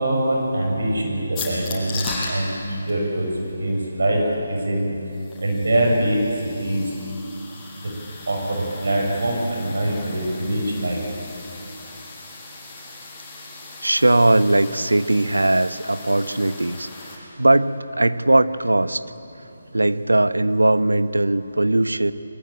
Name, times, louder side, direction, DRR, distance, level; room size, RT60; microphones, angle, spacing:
voice 1, 0.0-3.3 3.6-4.2 4.5-4.9 5.4-6.2 6.6-6.8 8.3-11.0, right 1 dB, 65° right, 0 dB, 6.7 m, -23 dB
sound 1, 1.3-17.2, left 3 dB, 10° left, 6.6 m, -38 dB
voice 2, 13.8-19.0 19.7-22.1, right 2 dB, 85° right, 12 dB, 1.1 m, -19 dB
28.5 x 23.5 x 8.8 m, 2.8 s
figure-of-eight pair, 150°, 0 cm